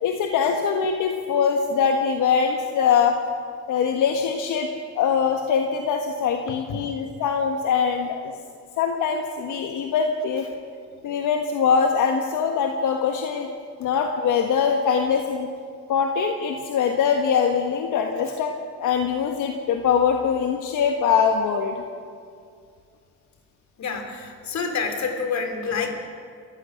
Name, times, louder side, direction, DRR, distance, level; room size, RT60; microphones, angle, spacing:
voice 1, 0.0-3.2 3.7-4.7 4.9-8.3 8.8-10.5 11.0-13.5 13.8-15.5 15.9-18.5 18.8-21.8, left 6 dB, 85° left, 3 dB, 1.5 m, -22 dB
voice 2, 23.8-25.9, left 5 dB, 65° left, 4 dB, 3.6 m, -27 dB
29.5 x 15.0 x 6.5 m, 2.3 s
cardioid pair, 90°, 30 cm